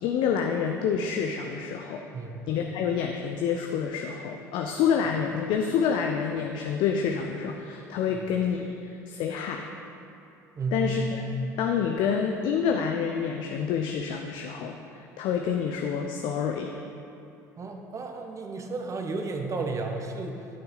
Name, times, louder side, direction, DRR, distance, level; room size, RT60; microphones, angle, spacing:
voice 1, 0.0-2.0 2.5-9.7 10.7-11.0 11.6-16.7, left 7 dB, 60° left, 3 dB, 0.6 m, -28 dB
voice 2, 10.6-11.0 17.6-20.5, right 3 dB, 35° right, 3 dB, 1.3 m, -32 dB
12.0 x 6.9 x 3.9 m, 2.7 s
hypercardioid pair, 65°, 9 cm